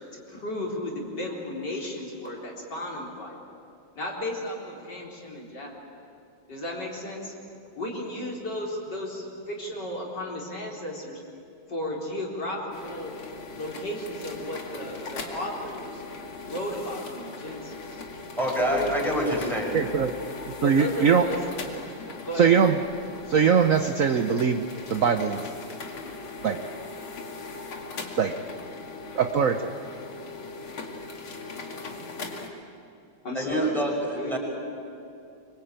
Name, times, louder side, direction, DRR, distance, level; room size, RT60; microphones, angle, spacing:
voice 1, 0.1-3.4 3.9-5.7 6.5-7.3 7.7-11.2 11.7-13.1 13.5-16.0 16.4-18.0 18.6-18.9 19.2-19.4 20.6-21.4 22.2-22.6 32.0-32.1 33.2-33.8 34.1-34.4, left 1 dB, 55° left, -2 dB, 4.6 m, -34 dB
sound 1, 12.7-32.5, left 3 dB, 85° left, 3.2 m, -39 dB
voice 2, 18.4-20.1 33.3-34.4, equal, ahead, -2 dB, 5.8 m, -27 dB
voice 3, 19.7-20.1 20.6-21.3 22.4-22.8 23.3-24.6 24.9-25.4 26.4-26.6 28.2-28.4 29.1-29.7, right 7 dB, 50° right, 7 dB, 1.1 m, -21 dB
25.0 x 24.0 x 9.0 m, 2.7 s
omnidirectional pair, 2.2 m